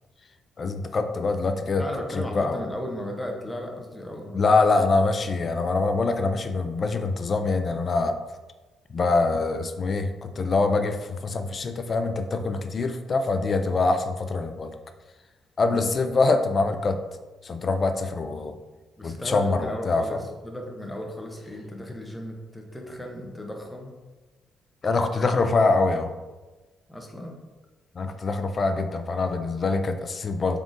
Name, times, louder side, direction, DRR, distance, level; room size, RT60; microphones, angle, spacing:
voice 1, 0.6-1.8 2.3-2.7 4.3-8.2 8.9-14.7 15.6-17.0 17.4-18.5 19.0-20.2 24.8-26.1 28.0-30.6, left 3 dB, 40° left, 7 dB, 0.3 m, -24 dB
voice 2, 1.8-4.9 15.6-15.9 19.0-23.9 26.9-27.4, left 1 dB, 10° left, 1 dB, 0.7 m, -36 dB
3.7 x 3.6 x 2.5 m, 1.2 s
cardioid pair, 90°, 0 cm